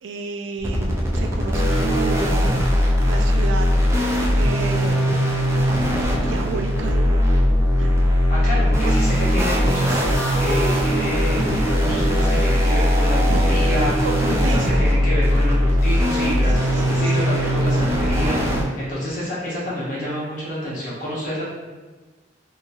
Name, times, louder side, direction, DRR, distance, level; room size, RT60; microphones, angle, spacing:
voice 1, 0.0-2.5 3.1-3.7 4.4-5.2 6.2-7.4 7.8-7.9 8.8-9.0 13.3-13.4 14.0-14.9 16.5-17.1, right 3 dB, 85° right, 4 dB, 0.4 m, -31 dB
sound 1, 0.6-18.6, equal, 15° right, 0.3 m, -19 dB
voice 2, 8.3-21.5, equal, 45° left, -8 dB, 1.1 m, -28 dB
2.8 x 2.5 x 2.8 m, 1.3 s
head